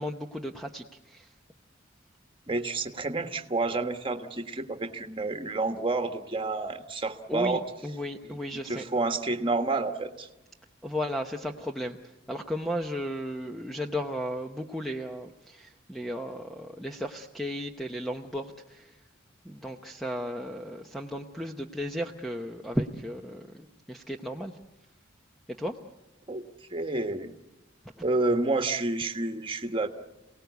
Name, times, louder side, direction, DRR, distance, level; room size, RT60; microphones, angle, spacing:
voice 1, 0.0-1.3 7.3-8.8 10.8-12.0 12.3-18.9 19.4-24.5 25.6-25.8 28.0-28.1, equal, ahead, 3 dB, 0.9 m, -35 dB
voice 2, 2.5-7.6 8.7-10.3 26.3-26.4 26.7-27.3 28.0-29.9, right 3 dB, 25° right, 6 dB, 1.4 m, -29 dB
28.5 x 18.5 x 8.2 m, 1.0 s
head